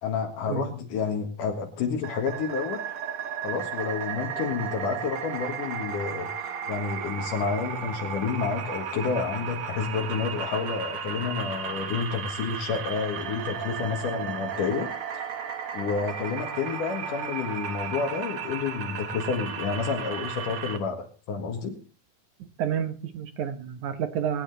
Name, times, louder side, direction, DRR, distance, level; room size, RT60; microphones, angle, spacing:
voice 1, 0.0-2.9 3.4-14.9 15.7-21.8, left 5 dB, 75° left, 2 dB, 3.3 m, -30 dB
sound 1, 2.0-20.8, right 7 dB, 55° right, 1.8 m, -34 dB
voice 2, 22.4-24.4, right 8 dB, 70° right, 9 dB, 2.6 m, -30 dB
20.0 x 9.8 x 4.0 m, 0.38 s
omnidirectional pair, 3.7 m